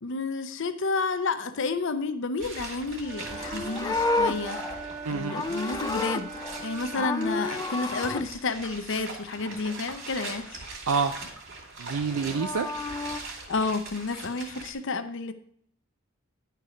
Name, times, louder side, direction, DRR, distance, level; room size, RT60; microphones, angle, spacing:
voice 1, 0.0-4.6 5.1-6.3 6.6-10.7 13.5-15.3, left 3 dB, 60° left, 0.7 m, -30 dB
sound 1, 2.4-14.7, right 3 dB, 60° right, 2.5 m, -41 dB
Wind instrument woodwind instrument, 3.0-7.6, right 4 dB, 40° right, 0.8 m, -40 dB
Livestock farm animals working animals, 3.2-6.6 6.9-8.2 12.0-13.2, left 2 dB, 20° left, 0.3 m, -31 dB
voice 2, 5.0-5.5 10.9-11.2 11.8-12.7, right 5 dB, 90° right, 0.5 m, -27 dB
10.5 x 4.7 x 4.8 m
head